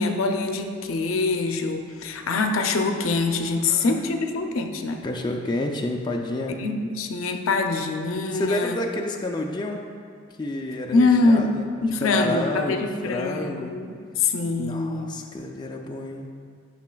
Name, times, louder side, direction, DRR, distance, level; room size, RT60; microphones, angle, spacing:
voice 1, 0.0-5.0 6.6-8.8 10.9-15.2, left 3 dB, 80° left, 5 dB, 0.5 m, -24 dB
voice 2, 3.6-4.0 5.0-6.6 8.3-9.9 10.4-13.7 14.6-16.3, left 2 dB, 20° left, 1 dB, 0.3 m, -30 dB
10.5 x 5.8 x 2.3 m, 2.2 s
head